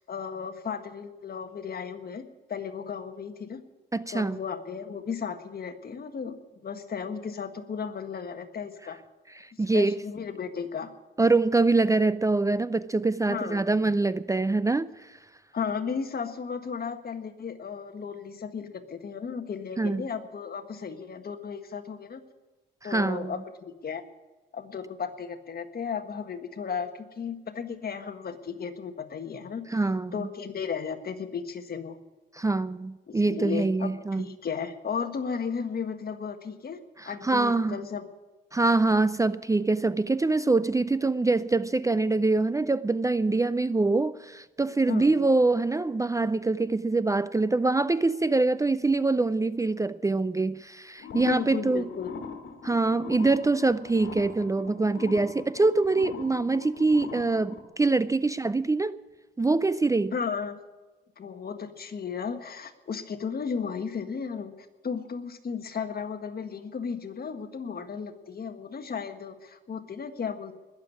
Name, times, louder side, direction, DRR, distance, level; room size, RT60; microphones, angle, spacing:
voice 1, 0.1-2.2 2.5-3.6 4.1-9.0 9.7-10.9 13.3-13.9 15.5-22.2 22.8-24.0 24.5-29.6 30.1-32.0 33.1-36.8 37.0-38.1 44.9-45.3 51.1-52.2 60.1-60.6 61.2-64.5 64.8-70.6, left 6 dB, 50° left, 1.6 m, -35 dB
voice 2, 3.9-4.4 9.4-10.0 11.2-14.9 19.8-20.0 22.8-23.3 29.7-30.3 32.3-34.2 37.0-37.8 38.5-51.8 52.6-59.0 59.4-60.1, right 3 dB, 15° right, 0.4 m, -24 dB
sound 1, 51.0-57.6, left 5 dB, 80° left, 2.1 m, -42 dB
20.5 x 7.3 x 9.7 m
cardioid pair, 100°, 19 cm